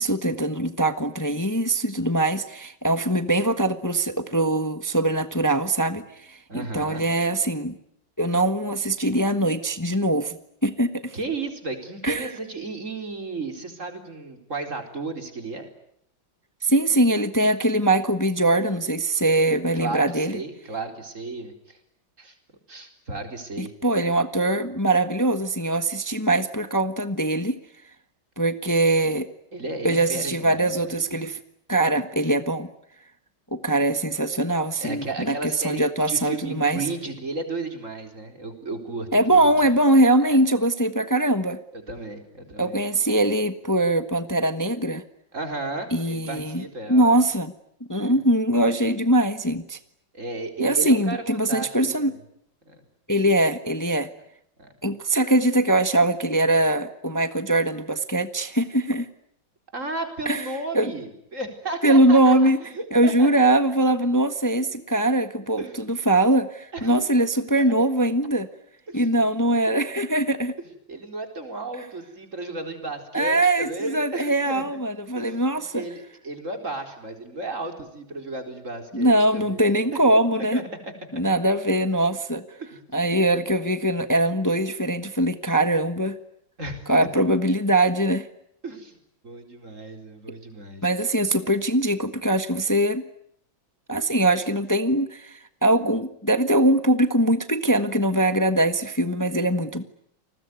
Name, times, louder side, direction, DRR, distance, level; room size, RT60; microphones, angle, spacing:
voice 1, 0.0-7.7 8.2-10.4 10.6-11.2 12.0-12.3 16.6-20.4 23.6-27.6 28.4-29.3 29.8-31.4 31.7-32.7 33.5-35.3 35.6-36.8 39.1-41.6 42.6-45.0 45.9-46.6 46.9-47.5 47.9-49.8 50.6-52.1 53.1-54.1 54.8-59.1 60.2-60.4 60.7-60.9 61.8-62.6 62.9-65.6 65.9-68.5 68.9-70.5 73.1-75.8 78.9-80.6 81.1-82.4 82.9-86.2 86.9-88.3 90.8-93.0 93.9-99.8, right 1 dB, 10° left, 10 dB, 1.0 m, -22 dB
voice 2, 6.5-7.1 11.1-15.7 19.7-21.8 22.2-22.4 22.7-23.7 29.5-31.0 34.8-39.5 40.2-40.4 41.7-42.8 45.3-47.2 47.9-48.2 50.1-52.2 52.7-52.8 54.6-54.7 59.7-63.4 65.6-65.8 66.7-66.9 67.6-67.7 68.9-69.1 70.9-74.8 75.1-80.0 80.4-81.2 82.6-82.8 86.6-87.2 88.6-89.0 89.2-90.9, right 2 dB, 35° right, 5 dB, 4.7 m, -34 dB
29.5 x 21.0 x 9.6 m, 0.74 s
omnidirectional pair, 2.2 m